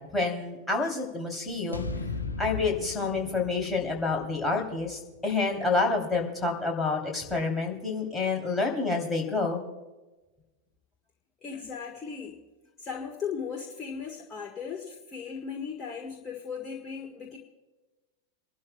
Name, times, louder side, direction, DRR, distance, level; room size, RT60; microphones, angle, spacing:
voice 1, 0.1-1.9 2.4-9.6, left 3 dB, 5° left, -1 dB, 3.1 m, -28 dB
sound 1, 1.7-5.9, left 4 dB, 80° left, 0.8 m, -38 dB
voice 2, 11.4-12.4 12.8-17.4, left 6 dB, 25° left, 1 dB, 1.4 m, -37 dB
29.0 x 12.0 x 2.3 m, 1.1 s
figure-of-eight pair, 90°, 0 cm